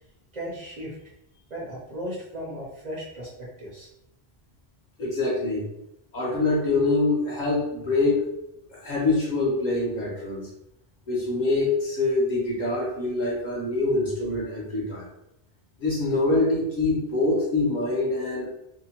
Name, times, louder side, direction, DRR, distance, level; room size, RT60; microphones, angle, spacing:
voice 1, 0.3-1.0 1.5-3.9, equal, 45° right, -4 dB, 0.7 m, -36 dB
voice 2, 5.0-5.7 6.1-8.3 8.7-10.5 11.1-15.1 15.8-18.5, left 2 dB, 50° left, -5 dB, 0.8 m, -25 dB
2.8 x 2.1 x 2.8 m, 0.84 s
omnidirectional pair, 1.1 m